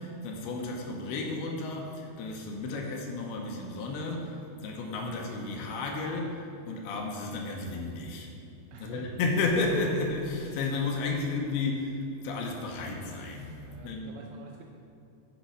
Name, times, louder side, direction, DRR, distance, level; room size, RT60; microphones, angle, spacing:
voice 1, 0.0-8.3 8.8-14.2, left 3 dB, 80° left, 1 dB, 2.6 m, -32 dB
voice 2, 8.7-9.1 13.6-14.6, right 5 dB, 80° right, 0 dB, 2.5 m, -48 dB
10.5 x 4.5 x 5.3 m, 2.5 s
omnidirectional pair, 4.6 m